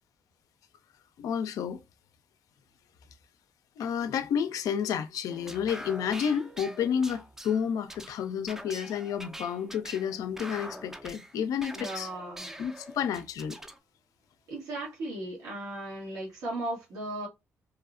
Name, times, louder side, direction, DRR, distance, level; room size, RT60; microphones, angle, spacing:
voice 1, 1.2-1.8 3.8-12.1 12.6-13.6, left 8 dB, 70° left, 0.4 m, -30 dB
sound 1, 5.3-13.8, equal, 5° right, 0.4 m, -44 dB
voice 2, 11.7-12.6 14.5-17.3, right 1 dB, 75° right, 1.3 m, -36 dB
2.8 x 2.0 x 2.4 m
supercardioid pair, 55°, 6 cm